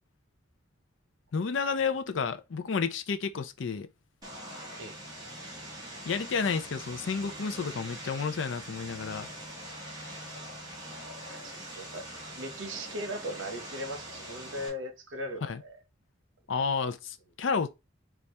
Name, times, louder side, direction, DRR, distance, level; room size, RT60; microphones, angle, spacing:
voice 1, 1.3-3.9 6.0-9.3 15.4-15.6 16.5-17.7, left 5 dB, 75° left, 0.5 m, -31 dB
Vehicle, 4.2-14.7, right 1 dB, 20° right, 1.3 m, -43 dB
voice 2, 11.3-12.0 12.4-15.8, equal, 85° right, 0.9 m, -38 dB
4.1 x 2.4 x 3.2 m
head